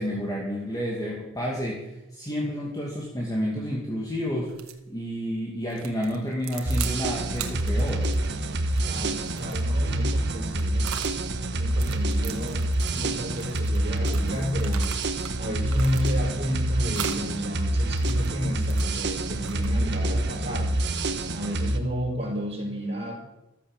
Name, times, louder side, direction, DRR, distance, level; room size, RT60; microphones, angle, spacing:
voice 1, 0.0-4.5 4.9-8.1, equal, 20° left, -2 dB, 2.5 m, -30 dB
sound 1, 4.5-4.8 5.7-7.0 7.3-11.2 11.6-15.4 15.7-16.4 16.9-17.2 17.8-19.9, right 9 dB, 90° right, 1.7 m, -40 dB
sound 2, 6.7-21.8, right 1 dB, 55° right, 1.4 m, -27 dB
voice 2, 8.8-10.9 11.5-12.6 12.9-14.8 15.4-20.7 21.3-23.2, equal, 30° right, -8 dB, 5.3 m, -31 dB
14.0 x 13.5 x 7.3 m, 0.92 s
head